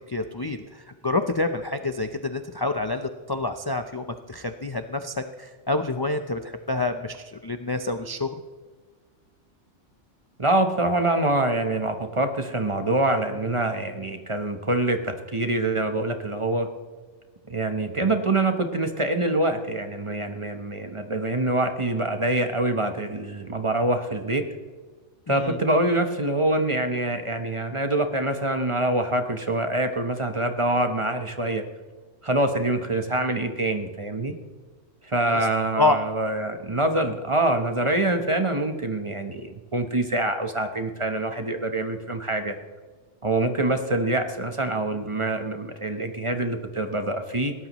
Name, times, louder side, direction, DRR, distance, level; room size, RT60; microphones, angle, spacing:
voice 1, 0.1-8.4 25.3-25.6 35.3-35.5 35.8-36.0, left 2 dB, 25° left, 7 dB, 0.5 m, -28 dB
voice 2, 10.4-16.7 17.5-24.5 25.3-31.6 32.2-34.3 35.0-42.5 43.2-47.5, right 2 dB, 25° right, 6 dB, 1.0 m, -25 dB
20.5 x 17.0 x 3.1 m, 1.4 s
omnidirectional pair, 1.2 m